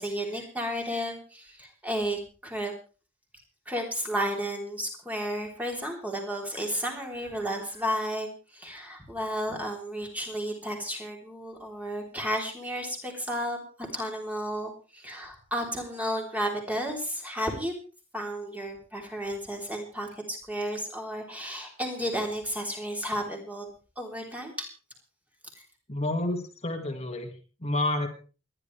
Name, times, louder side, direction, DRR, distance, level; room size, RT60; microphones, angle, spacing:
voice 1, 0.0-2.7 3.6-13.6 13.9-17.7 18.1-23.7 24.0-24.7, equal, 5° right, 1 dB, 3.4 m, -33 dB
voice 2, 25.9-28.1, left 1 dB, 30° left, 4 dB, 1.9 m, -30 dB
28.5 x 11.0 x 3.3 m, 0.36 s
head